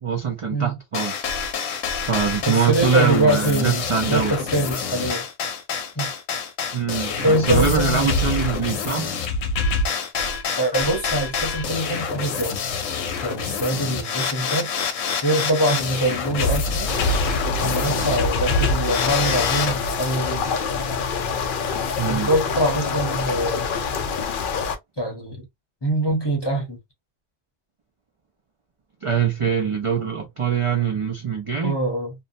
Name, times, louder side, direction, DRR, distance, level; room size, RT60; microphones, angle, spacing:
voice 1, 0.0-1.3 2.1-4.3 6.0-6.1 6.7-9.2 22.0-22.3 29.0-31.8, right 6 dB, 55° right, 0.3 m, -23 dB
sound 1, 0.9-19.7, left 4 dB, 85° left, 1.0 m, -26 dB
voice 2, 2.4-5.2 6.0-6.1 7.2-8.2 10.6-12.8 13.2-14.7 15.2-16.9 17.6-20.6 22.1-23.7 25.0-25.4 25.8-26.8 31.6-32.1, right 1 dB, 25° left, 0.7 m, -24 dB
sound 2, 16.9-24.8, left 5 dB, 65° left, 0.5 m, -26 dB
2.7 x 2.1 x 2.5 m
omnidirectional pair, 1.3 m